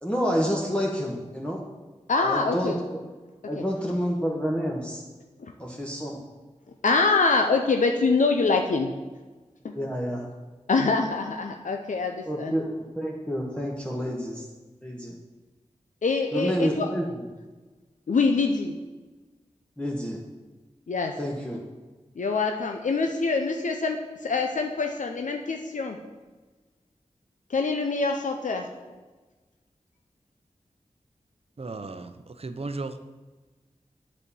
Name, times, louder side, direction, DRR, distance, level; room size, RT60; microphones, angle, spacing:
voice 1, 0.0-1.6 2.2-2.7 3.5-5.0 5.6-6.2 9.7-10.2 12.2-14.5 14.8-15.2 16.3-17.1 19.8-20.2 21.2-21.6, equal, 10° left, -2 dB, 1.2 m, -28 dB
voice 2, 2.1-2.8 3.6-3.7 5.4-5.5 6.8-8.9 9.6-9.7 10.7-12.6 16.0-16.9 18.1-18.7 20.9-21.1 22.2-26.0 27.5-28.6, left 4 dB, 85° left, 4 dB, 0.6 m, -25 dB
voice 3, 31.6-33.0, right 3 dB, 50° right, 10 dB, 0.7 m, -35 dB
8.2 x 4.2 x 6.9 m, 1.2 s
wide cardioid pair, 55°, 13 cm